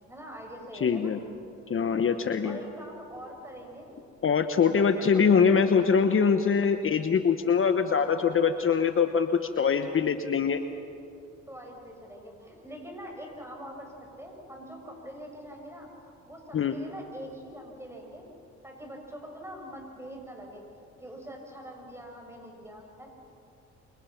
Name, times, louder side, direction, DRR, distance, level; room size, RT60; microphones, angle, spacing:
voice 1, 0.1-1.1 2.4-4.0 4.5-5.7 7.9-8.2 11.5-13.9 14.2-18.3 18.6-23.1, equal, 10° right, 1 dB, 6.9 m, -44 dB
voice 2, 0.8-1.2 1.7-2.6 4.2-10.6 16.5-16.8, left 6 dB, 45° left, 8 dB, 1.1 m, -23 dB
28.5 x 25.5 x 6.0 m, 2.7 s
cardioid pair, 90°, 30 cm